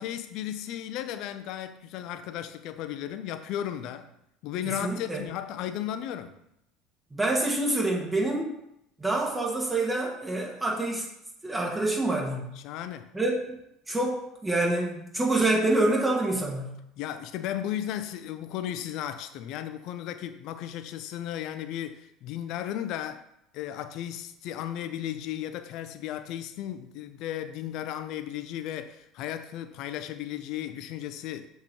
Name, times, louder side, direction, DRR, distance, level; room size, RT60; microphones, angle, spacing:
voice 1, 0.0-4.1 4.4-6.4 12.6-13.1 17.0-23.2 23.5-31.5, left 11 dB, 60° left, 0.6 m, -35 dB
voice 2, 4.8-5.2 7.1-8.5 9.0-11.1 11.4-12.5 13.1-13.6 13.9-16.8, right 2 dB, 15° right, 1.7 m, -27 dB
7.4 x 3.1 x 5.2 m
hypercardioid pair, 70°, 0 cm